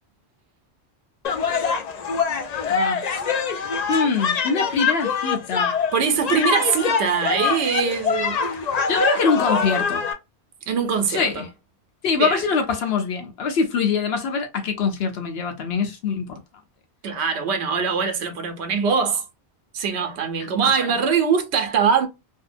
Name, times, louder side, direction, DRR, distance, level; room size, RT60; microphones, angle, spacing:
sound 1, 1.2-10.1, left 5 dB, 55° left, 0.5 m, -24 dB
voice 1, 2.7-3.0 3.9-5.7 8.9-10.0 11.1-11.5 12.0-16.4 20.4-21.0, left 5 dB, 70° left, 0.9 m, -24 dB
voice 2, 5.9-8.4 10.7-11.4 12.2-12.4 17.0-19.2 19.7-22.1, right 6 dB, 85° right, 0.9 m, -22 dB
2.7 x 2.1 x 2.5 m
omnidirectional pair, 1.1 m